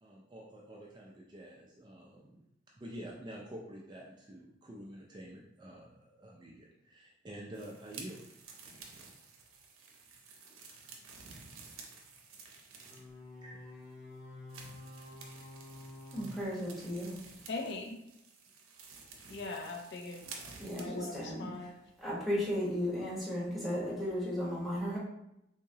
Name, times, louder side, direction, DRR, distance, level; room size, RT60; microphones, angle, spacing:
voice 1, 0.0-2.4 2.7-8.2 13.4-13.7, right 1 dB, 20° right, -2 dB, 0.3 m, -48 dB
sound 1, 7.5-13.2 13.8-13.9 14.5-20.9, right 4 dB, 90° right, 0.6 m, -52 dB
sound 2, 12.9-17.3, left 2 dB, 15° left, 1.2 m, -50 dB
voice 2, 16.1-17.2 20.6-25.0, equal, ahead, -7 dB, 0.9 m, -35 dB
voice 3, 17.5-18.0 19.3-21.7, left 3 dB, 55° left, 3 dB, 0.4 m, -41 dB
3.5 x 2.9 x 2.7 m, 0.83 s
head